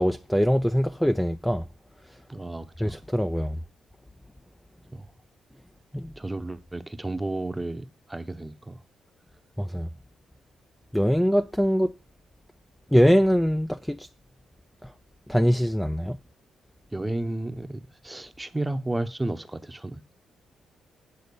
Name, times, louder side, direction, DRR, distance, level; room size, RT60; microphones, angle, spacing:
voice 1, 0.0-1.6 2.8-3.6 5.9-6.1 9.6-9.9 10.9-11.9 12.9-14.1 14.8-14.9 15.3-16.2, equal, 5° left, 0.4 m, -23 dB
voice 2, 2.3-3.0 4.9-5.1 6.2-8.8 16.9-20.0, right 2 dB, 15° right, 0.9 m, -32 dB
8.4 x 3.8 x 6.9 m
supercardioid pair, 65°, 0 cm